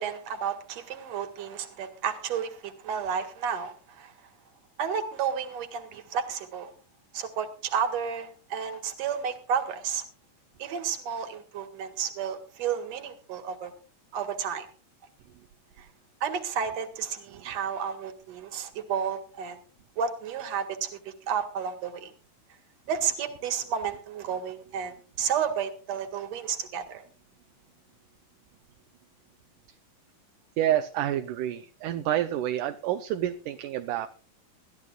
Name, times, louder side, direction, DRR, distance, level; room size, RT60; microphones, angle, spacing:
voice 1, 0.0-4.1 4.8-6.7 7.1-10.0 10.6-13.7 14.1-14.7 15.8-15.9 16.2-19.6 20.0-22.1 22.9-27.0, right 7 dB, 55° right, 8 dB, 2.7 m, -32 dB
voice 2, 30.6-34.1, right 12 dB, 75° right, 8 dB, 2.2 m, -28 dB
21.5 x 14.0 x 2.4 m, 0.36 s
omnidirectional pair, 3.8 m